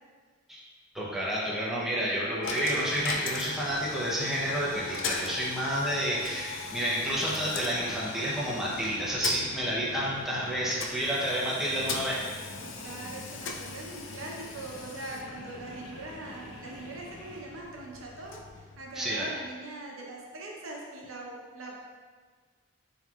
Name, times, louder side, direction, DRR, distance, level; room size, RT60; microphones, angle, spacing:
voice 1, 0.9-12.2 18.9-19.3, equal, ahead, -7 dB, 0.7 m, -30 dB
Coin (dropping), 2.4-19.4, left 4 dB, 60° left, 0.4 m, -40 dB
sound 1, 7.1-17.4, left 1 dB, 85° left, 0.8 m, -47 dB
voice 2, 12.6-18.4 18.8-21.8, right 2 dB, 75° right, -2 dB, 0.8 m, -42 dB
7.3 x 3.0 x 2.4 m, 1.5 s
head